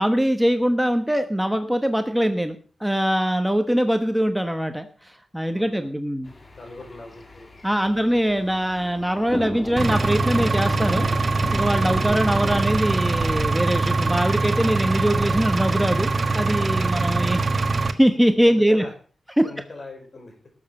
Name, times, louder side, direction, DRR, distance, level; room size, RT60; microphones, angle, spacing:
voice 1, 0.0-6.3 7.6-11.1 11.5-17.4 17.9-18.8 19.4-19.5, equal, 5° right, 7 dB, 1.1 m, -22 dB
voice 2, 5.5-6.0 6.6-7.5 7.8-8.3 16.8-17.2 18.4-18.9 19.4-20.4, left 3 dB, 50° left, 4 dB, 4.6 m, -41 dB
sound 1, 6.3-12.7, left 2 dB, 30° left, 2.1 m, -35 dB
Engine, 9.8-17.9, right 3 dB, 45° right, 1.2 m, -23 dB
18.0 x 7.4 x 5.4 m, 0.41 s
wide cardioid pair, 90°, 0 cm